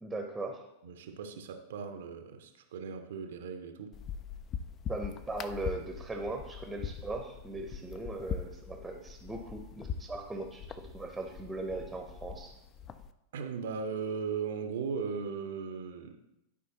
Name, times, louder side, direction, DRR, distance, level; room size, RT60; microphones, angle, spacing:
voice 1, 0.0-0.7 4.9-12.6, right 2 dB, 10° right, 4 dB, 0.8 m, -39 dB
voice 2, 0.8-4.0 13.3-16.2, right 5 dB, 60° right, 7 dB, 0.6 m, -37 dB
sound 1, 3.9-13.1, left 7 dB, 30° left, 0.4 m, -42 dB
11.0 x 4.9 x 2.8 m, 0.86 s
figure-of-eight pair, 90°, 0 cm